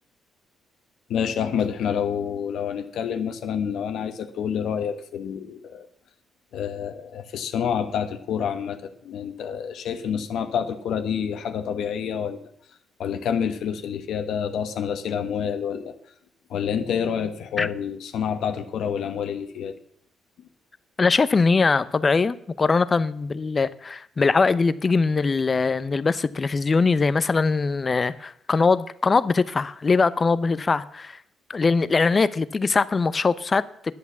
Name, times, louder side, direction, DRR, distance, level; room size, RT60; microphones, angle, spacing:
voice 1, 1.1-5.9 6.5-12.4 13.0-15.9 16.5-19.7, left 8 dB, 75° left, 8 dB, 1.2 m, -28 dB
voice 2, 21.0-31.2 31.5-33.9, left 4 dB, 30° left, 16 dB, 0.7 m, -22 dB
10.5 x 8.4 x 7.2 m, 0.69 s
cardioid pair, 90°, 0 cm